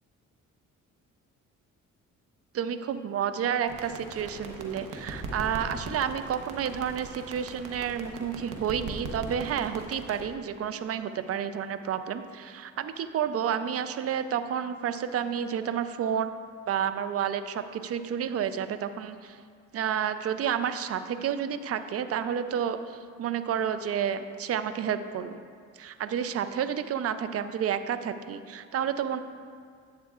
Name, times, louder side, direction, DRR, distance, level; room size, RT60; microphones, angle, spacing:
voice 1, 2.5-16.3 16.7-19.4 19.7-25.4 25.7-29.2, right 8 dB, 50° right, 11 dB, 0.5 m, -30 dB
sound 1, 3.7-10.3, right 2 dB, 80° right, 1.0 m, -40 dB
11.0 x 8.6 x 2.4 m, 2.1 s
cardioid pair, 90°, 30 cm